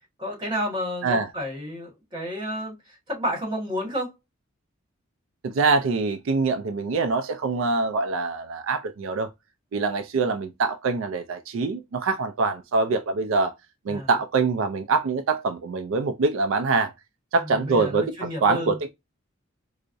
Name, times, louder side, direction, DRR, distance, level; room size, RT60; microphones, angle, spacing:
voice 1, 0.2-2.7 3.1-4.1 13.9-14.1 17.4-18.8, equal, 20° right, 1.6 m, -31 dB
voice 2, 5.4-9.3 9.7-13.5 13.9-16.9 17.3-18.9, right 4 dB, 75° right, 0.4 m, -24 dB
4.5 x 2.0 x 2.5 m
head